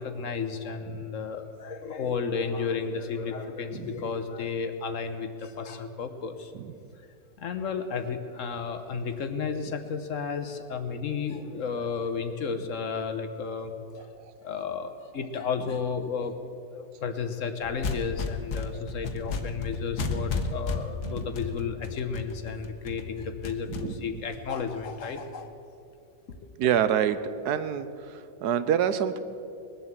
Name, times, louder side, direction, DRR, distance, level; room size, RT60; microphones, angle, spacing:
voice 1, 0.0-6.5 7.4-14.1 14.4-25.5 26.4-26.5, left 5 dB, 60° left, 8 dB, 1.2 m, -33 dB
sound 1, 17.6-25.1, left 4 dB, 85° left, 1.6 m, -34 dB
voice 2, 26.6-27.2 27.4-29.2, right 9 dB, 85° right, 12 dB, 1.3 m, -27 dB
21.0 x 7.8 x 7.3 m, 2.6 s
omnidirectional pair, 1.7 m